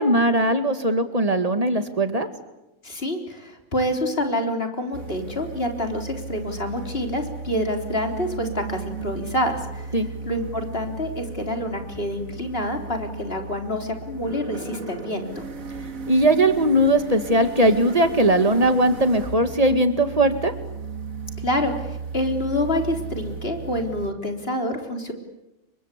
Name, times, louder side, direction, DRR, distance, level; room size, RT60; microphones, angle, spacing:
voice 1, 0.0-2.3 9.9-10.1 16.1-20.5, right 1 dB, 25° right, 9 dB, 2.2 m, -19 dB
voice 2, 2.8-9.9 10.2-15.4 21.4-25.1, left 1 dB, 45° left, 4 dB, 4.0 m, -27 dB
sound 1, 4.9-24.1, right 4 dB, 70° right, 2.5 m, -35 dB
29.5 x 24.0 x 8.4 m, 0.94 s
omnidirectional pair, 1.5 m